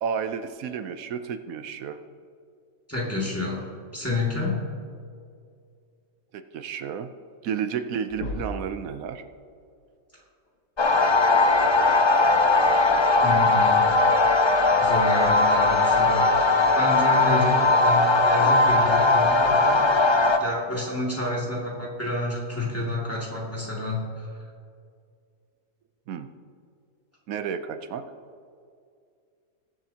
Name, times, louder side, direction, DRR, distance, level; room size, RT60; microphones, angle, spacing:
voice 1, 0.0-2.0 6.3-7.1 7.4-9.2 26.1-26.3 27.3-28.1, right 7 dB, 85° right, 9 dB, 1.1 m, -31 dB
voice 2, 2.9-3.6 3.9-4.6 13.2-13.9 14.8-19.9 20.4-24.3, left 2 dB, 10° left, -4 dB, 2.1 m, -29 dB
sound 1, 8.1-8.8 10.5-10.6 12.4-12.5 13.4-13.5, left 1 dB, 70° left, 1.7 m, -35 dB
sound 2, 10.8-20.4, left 3 dB, 45° left, 0.3 m, -19 dB
21.0 x 7.9 x 2.8 m, 2.3 s
omnidirectional pair, 1.4 m